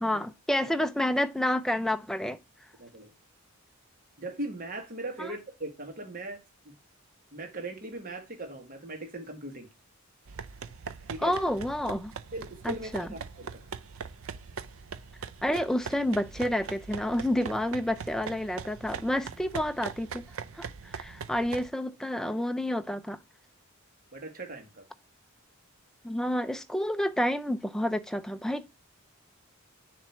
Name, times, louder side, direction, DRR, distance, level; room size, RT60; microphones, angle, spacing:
voice 1, 0.0-2.4 5.2-5.3 11.2-12.1 12.6-13.1 15.4-20.2 20.5-23.2 26.0-28.7, left 1 dB, ahead, 0.4 m, -29 dB
voice 2, 2.8-3.1 4.2-6.7 7.3-9.7 11.1-11.3 12.3-13.6 24.1-24.8, right 2 dB, 40° right, 1.5 m, -39 dB
sound 1, 10.3-21.7, right 5 dB, 70° right, 0.5 m, -41 dB
7.4 x 3.0 x 5.6 m
head